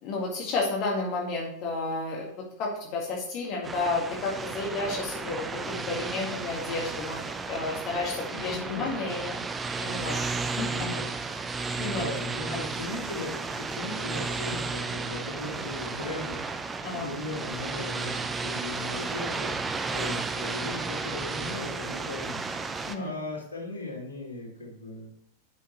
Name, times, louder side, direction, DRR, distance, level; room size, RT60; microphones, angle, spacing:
voice 1, 0.0-2.3 2.6-7.2 7.5-9.4 9.7-10.2 10.6-10.7 11.8-12.0 12.5-12.6 16.8-17.1 22.9-23.2, left 3 dB, 40° left, -2 dB, 1.9 m, -31 dB
sound 1, 3.6-23.0, right 4 dB, 15° right, 0.6 m, -33 dB
voice 2, 8.3-8.9 10.6-25.1, left 2 dB, 85° right, -6 dB, 2.7 m, -38 dB
11.0 x 5.8 x 3.1 m, 0.72 s
figure-of-eight pair, 90°, 0 cm